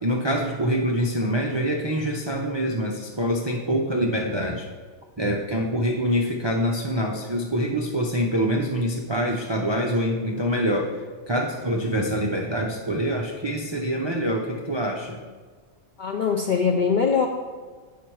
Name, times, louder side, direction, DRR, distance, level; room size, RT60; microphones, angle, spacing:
voice 1, 0.0-4.7 5.2-11.0 11.3-15.2, equal, 45° right, 0 dB, 0.3 m, -25 dB
voice 2, 16.0-17.3, left 6 dB, 65° left, 2 dB, 0.4 m, -22 dB
8.3 x 5.9 x 4.6 m, 1.5 s
omnidirectional pair, 1.5 m